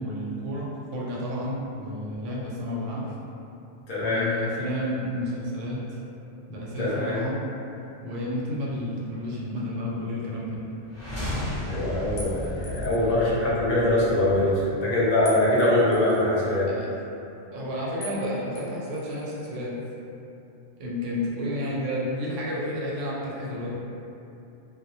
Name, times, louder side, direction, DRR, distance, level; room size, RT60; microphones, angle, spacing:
voice 1, 0.0-3.0 4.0-6.0 6.5-7.4 8.0-10.6 16.7-16.9 17.5-19.7 20.8-23.8, left 1 dB, 75° right, -6 dB, 0.9 m, -31 dB
voice 2, 3.9-4.2 6.8-7.2 11.7-16.7, left 1 dB, 55° left, -8 dB, 0.7 m, -23 dB
sound 1, 10.9-14.9, left 1 dB, 20° left, 0.5 m, -34 dB
sound 2, 12.2-13.1 15.3-16.2 18.0-18.2 18.6-19.5, left 1 dB, 80° left, 0.9 m, -43 dB
2.2 x 2.0 x 2.8 m, 2.8 s
omnidirectional pair, 1.3 m